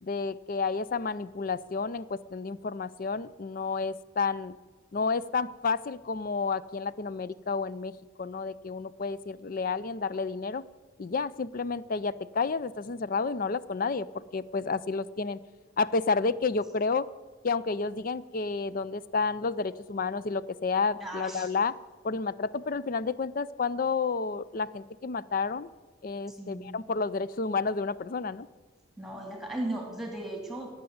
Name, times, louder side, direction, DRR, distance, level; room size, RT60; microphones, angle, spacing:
voice 1, 0.0-4.5 4.9-10.6 11.0-15.4 15.8-17.1 17.4-21.8 22.0-25.7 26.0-28.5, left 4 dB, 40° left, 17 dB, 0.4 m, -30 dB
voice 2, 21.0-21.5 26.3-26.8 29.0-30.8, right 1 dB, ahead, 1 dB, 2.4 m, -37 dB
18.5 x 6.9 x 7.9 m, 1.4 s
head